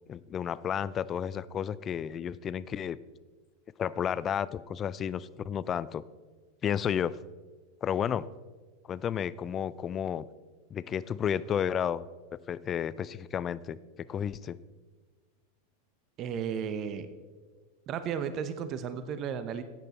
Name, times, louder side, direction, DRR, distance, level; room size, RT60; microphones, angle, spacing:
voice 1, 0.1-3.0 3.8-6.0 6.6-7.2 7.8-8.3 8.9-10.3 10.7-12.0 12.5-14.6, left 8 dB, 30° left, 18 dB, 0.4 m, -32 dB
voice 2, 16.2-17.1 17.9-19.6, right 7 dB, 40° right, 11 dB, 0.8 m, -34 dB
13.0 x 9.1 x 4.1 m, 1.4 s
hypercardioid pair, 95°, 0 cm